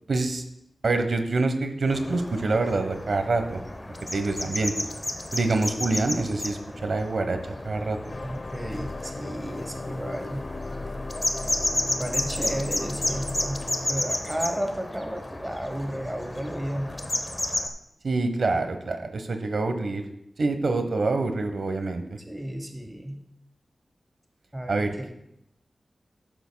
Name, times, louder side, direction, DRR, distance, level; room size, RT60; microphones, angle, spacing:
voice 1, 0.1-0.4 0.8-3.6 4.1-4.7 5.3-7.4 7.6-8.0 18.0-20.0 20.4-22.2 24.7-25.1, right 3 dB, 70° right, 7 dB, 1.1 m, -26 dB
sound 1, 1.9-17.7, left 1 dB, 20° left, 0.9 m, -32 dB
sound 2, 8.1-13.9, left 2 dB, 55° left, 0.8 m, -37 dB
voice 2, 8.2-10.5 11.8-17.0 22.3-23.3 24.5-25.1, equal, 15° right, 4 dB, 1.0 m, -33 dB
14.0 x 11.0 x 2.3 m, 0.80 s
wide cardioid pair, 115°, 0 cm